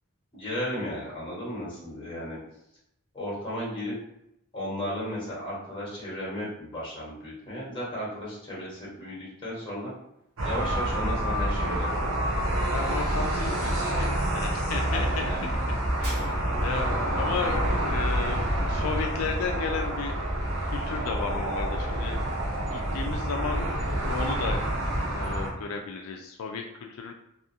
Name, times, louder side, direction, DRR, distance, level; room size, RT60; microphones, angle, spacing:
voice 1, 0.3-2.4 3.1-3.9 4.5-9.9 10.4-12.2 14.9-15.5, equal, 25° left, -7 dB, 1.1 m, -34 dB
sound 1, 10.4-25.5, right 1 dB, 65° right, 0.7 m, -28 dB
sound 2, 10.6-15.1, left 1 dB, 10° right, 0.4 m, -37 dB
voice 2, 12.7-15.3 16.0-16.3 16.6-20.2 20.6-22.2 22.7-23.7 24.0-27.1, left 5 dB, 80° left, 3 dB, 0.3 m, -34 dB
Shatter, 16.0-16.8, right 1 dB, 50° right, 1.0 m, -42 dB
2.6 x 2.4 x 2.6 m, 0.80 s
head